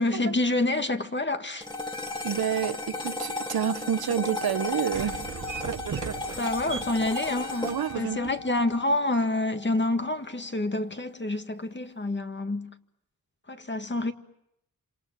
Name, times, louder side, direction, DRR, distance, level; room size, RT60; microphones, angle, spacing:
voice 1, 0.0-1.7 6.3-12.7 13.5-14.1, left 2 dB, 30° left, 1.9 m, -28 dB
sound 1, 1.6-10.1, left 2 dB, 15° left, 2.4 m, -35 dB
voice 2, 2.2-5.2 6.0-6.1 7.6-8.3, right 8 dB, 90° right, 1.1 m, -29 dB
sound 2, 4.9-8.9, right 7 dB, 60° right, 1.0 m, -38 dB
27.0 x 27.0 x 7.5 m
cardioid pair, 65°, 36 cm